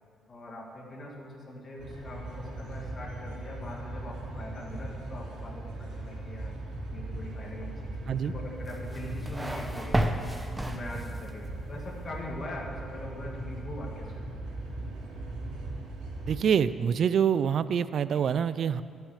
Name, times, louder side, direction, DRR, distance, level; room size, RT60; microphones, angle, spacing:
voice 1, 0.3-6.5 6.9-14.5, left 1 dB, 40° left, -1 dB, 2.1 m, -42 dB
sound 1, 1.8-16.4, right 1 dB, 90° right, 3.0 m, -39 dB
sound 2, 8.7-11.4, right 1 dB, 10° right, 0.7 m, -32 dB
voice 2, 16.2-18.8, right 8 dB, 60° right, 15 dB, 0.4 m, -26 dB
11.0 x 6.5 x 6.4 m, 2.2 s
cardioid pair, 90°, 0 cm